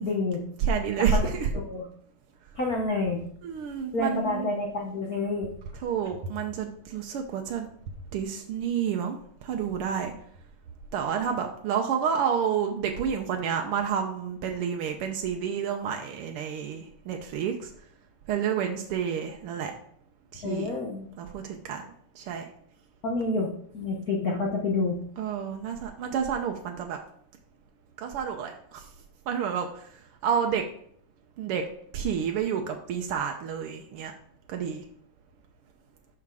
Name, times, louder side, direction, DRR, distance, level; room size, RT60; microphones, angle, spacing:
voice 1, 0.0-0.4 1.5-1.9 2.6-3.2 3.9-5.5 20.4-21.1 23.0-23.5 23.7-25.0, left 3 dB, 75° left, -1 dB, 0.8 m, -28 dB
voice 2, 0.6-1.5 3.4-4.5 5.8-7.7 8.1-10.1 10.9-17.7 18.3-19.7 20.3-20.7 21.2-21.9 22.1-22.4 25.2-27.0 28.0-28.8 29.3-29.9 30.2-30.6 31.4-31.6 31.9-34.1 34.5-34.8, right 7 dB, 75° right, 3 dB, 1.3 m, -29 dB
7.0 x 5.9 x 4.8 m, 0.63 s
omnidirectional pair, 3.4 m